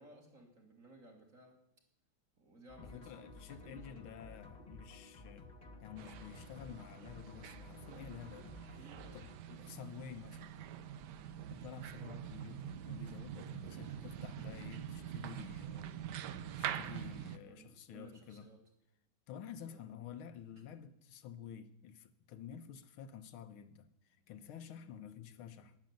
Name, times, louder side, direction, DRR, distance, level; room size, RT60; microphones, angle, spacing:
voice 1, 0.0-1.6 2.4-4.1 8.8-9.0 12.0-12.3 13.7-14.0 14.4-14.5 14.9-15.1 17.5-18.6 19.7-19.9, right 2 dB, 40° right, 2.7 m, -58 dB
sound 1, 2.7-9.3, left 2 dB, 25° left, 1.4 m, -54 dB
voice 2, 2.8-5.5 5.8-10.6 11.5-15.9 16.5-18.5 19.3-25.8, left 8 dB, 80° left, 1.7 m, -51 dB
sound 2, 6.0-17.4, right 9 dB, 65° right, 1.1 m, -45 dB
10.5 x 9.6 x 9.0 m
omnidirectional pair, 2.3 m